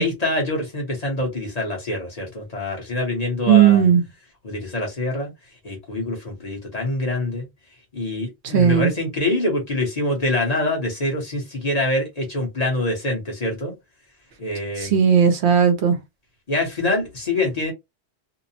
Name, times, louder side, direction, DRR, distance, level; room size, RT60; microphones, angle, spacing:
voice 1, 0.0-3.9 4.4-5.3 5.6-7.5 7.9-13.7 14.4-14.9 16.5-17.7, left 2 dB, 40° left, 0.9 m, -25 dB
voice 2, 3.5-4.0 8.4-8.9 14.8-16.0, right 8 dB, 75° right, 0.9 m, -16 dB
2.7 x 2.0 x 2.7 m
omnidirectional pair, 1.2 m